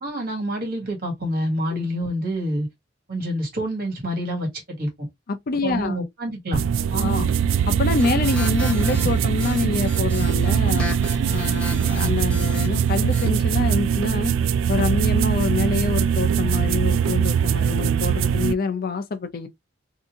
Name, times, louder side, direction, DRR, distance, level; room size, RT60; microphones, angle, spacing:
voice 1, 0.0-2.7 3.1-4.5 4.8-5.1 5.6-6.6 6.9-7.2, equal, 50° right, 1.8 m, -27 dB
voice 2, 5.3-6.0 6.9-7.3 7.7-11.0 11.3-14.3 14.7-19.5, left 4 dB, 50° left, 0.5 m, -26 dB
sound 1, 6.5-18.5, right 7 dB, 75° right, 0.3 m, -21 dB
sound 2, 8.0-13.3, left 2 dB, 5° left, 1.1 m, -34 dB
2.8 x 2.6 x 3.5 m
head